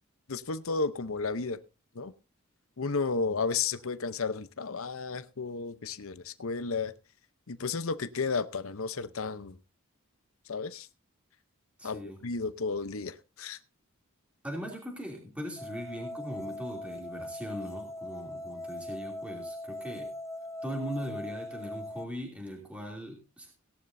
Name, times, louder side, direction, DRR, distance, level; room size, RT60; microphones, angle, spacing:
voice 1, 0.3-1.6 1.9-2.1 2.8-6.9 7.5-9.6 10.5-10.9 11.8-13.6, left 4 dB, 70° left, 13 dB, 0.8 m, -33 dB
voice 2, 11.8-12.2 14.4-20.1 20.6-23.5, equal, 5° right, 0 dB, 2.7 m, -40 dB
sound 1, 15.6-22.1, left 1 dB, 15° left, 0.6 m, -40 dB
18.0 x 11.0 x 2.7 m, 0.28 s
head